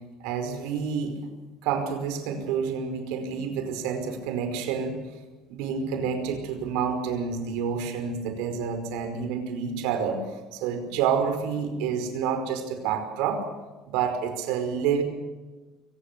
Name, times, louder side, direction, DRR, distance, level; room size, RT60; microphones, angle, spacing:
voice 1, 0.2-1.2 1.6-5.0 5.5-13.5 13.8-15.0, right 6 dB, 75° right, 7 dB, 5.0 m, -28 dB
23.5 x 19.0 x 6.9 m, 1.2 s
cardioid pair, 175°, 0 cm